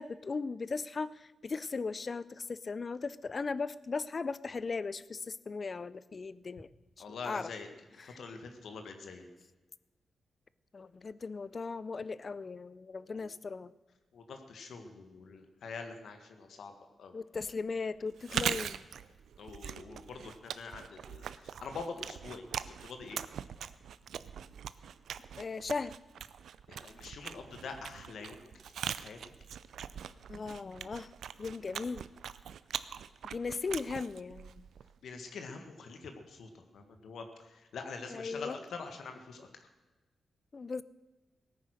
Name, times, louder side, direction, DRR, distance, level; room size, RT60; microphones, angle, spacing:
voice 1, 0.0-6.7 7.1-7.5 8.0-8.2 10.7-13.7 17.1-18.8 25.4-25.9 30.3-31.1 31.4-32.1 33.2-34.6 38.1-38.6 40.5-40.8, left 4 dB, 40° left, 18 dB, 0.5 m, -37 dB
voice 2, 7.0-7.7 8.0-9.3 13.1-13.2 14.1-16.7 17.0-17.1 18.3-18.5 19.4-23.2 26.7-28.4 28.8-29.2 35.0-39.7, left 4 dB, 80° left, 6 dB, 1.6 m, -45 dB
Chewing mastication, 18.1-35.0, right 8 dB, 85° right, 0.5 m, -41 dB
17.5 x 9.5 x 6.4 m, 1.2 s
wide cardioid pair, 115°, 0 cm